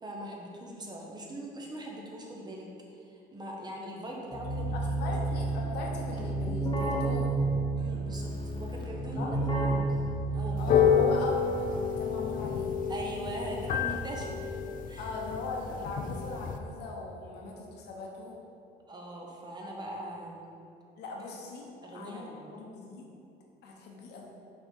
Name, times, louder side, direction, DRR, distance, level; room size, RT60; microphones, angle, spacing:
voice 1, 0.0-2.7 3.1-5.1 7.8-10.0 10.3-10.6 12.9-15.1 18.9-20.4 21.8-22.5, right 1 dB, 25° right, -1 dB, 1.0 m, -41 dB
Keyboard (musical), 4.3-11.2, right 2 dB, 25° left, 1.0 m, -31 dB
voice 2, 4.8-7.5 9.2-9.3 10.6-12.8 15.0-18.4 21.0-23.1 23.6-24.3, left 3 dB, 80° left, -1 dB, 1.0 m, -40 dB
sound 1, 10.6-16.6, left 7 dB, 55° left, 0.4 m, -29 dB
5.4 x 3.9 x 4.5 m, 2.6 s
cardioid pair, 110°, 17 cm